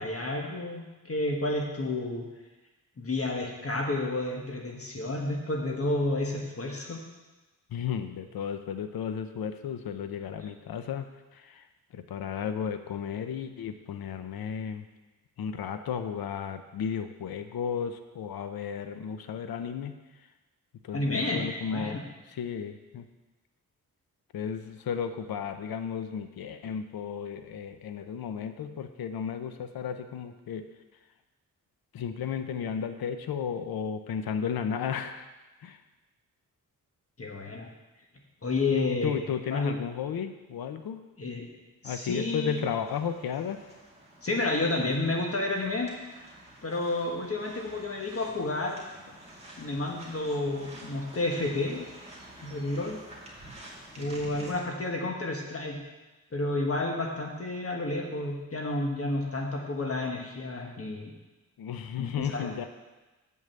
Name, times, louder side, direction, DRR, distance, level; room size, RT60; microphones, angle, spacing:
voice 1, 0.0-2.2 3.0-7.0 20.9-21.4 21.7-22.0 37.2-37.7 38.4-39.2 39.5-39.8 41.2-41.4 41.8-42.6 44.2-45.9 46.6-48.8 49.6-51.8 52.4-53.0 54.0-55.8 56.3-61.1 62.0-62.6, left 2 dB, 40° left, 0 dB, 1.4 m, -30 dB
voice 2, 7.7-11.1 11.3-11.6 11.9-14.9 15.4-19.9 20.8-22.0 22.3-23.1 24.3-30.6 31.9-35.3 35.6-35.8 38.7-41.0 41.8-43.6 54.0-54.6 61.6-62.7, left 7 dB, 90° left, 8 dB, 0.7 m, -34 dB
sound 1, 42.4-54.6, right 1 dB, 20° right, 2.3 m, -49 dB
8.0 x 5.5 x 7.6 m, 1.1 s
wide cardioid pair, 105°, 35 cm